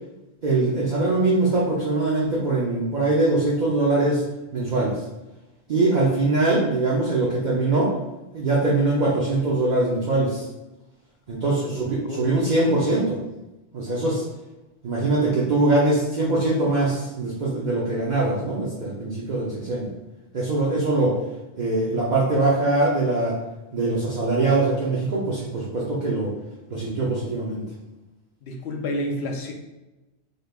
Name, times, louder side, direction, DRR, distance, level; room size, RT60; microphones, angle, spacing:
voice 1, 0.4-4.2 4.5-5.0 5.7-7.9 8.3-10.5 11.3-13.2 13.7-14.2 14.8-19.9 20.3-21.2 21.6-23.3 23.7-26.3 26.7-27.6, right 2 dB, 50° right, -5 dB, 0.8 m, -22 dB
voice 2, 11.6-12.3 28.4-29.5, left 1 dB, 75° left, 2 dB, 0.9 m, -30 dB
4.2 x 3.3 x 2.3 m, 1.0 s
omnidirectional pair, 1.1 m